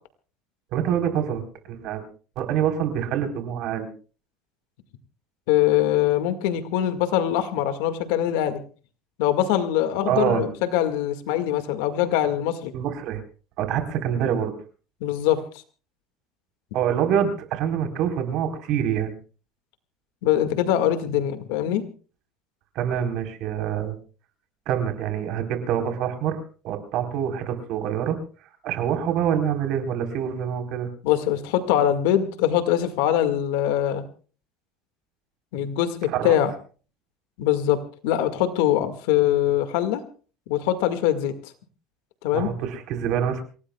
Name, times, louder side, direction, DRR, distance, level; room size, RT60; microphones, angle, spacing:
voice 1, 0.7-1.4 1.7-2.0 2.4-3.9 10.1-10.5 12.7-13.2 13.6-14.5 16.7-19.1 22.8-24.0 24.7-28.2 28.6-30.9 36.1-36.4 42.3-43.4, right 9 dB, 55° right, 5 dB, 4.1 m, -25 dB
voice 2, 5.5-8.6 9.2-12.7 15.0-15.4 20.2-21.8 31.0-34.0 35.5-36.5 37.4-40.0 40.5-41.3 42.2-42.5, left 11 dB, 80° left, 9 dB, 1.9 m, -23 dB
28.0 x 17.5 x 2.3 m, 0.38 s
cardioid pair, 140°, 0 cm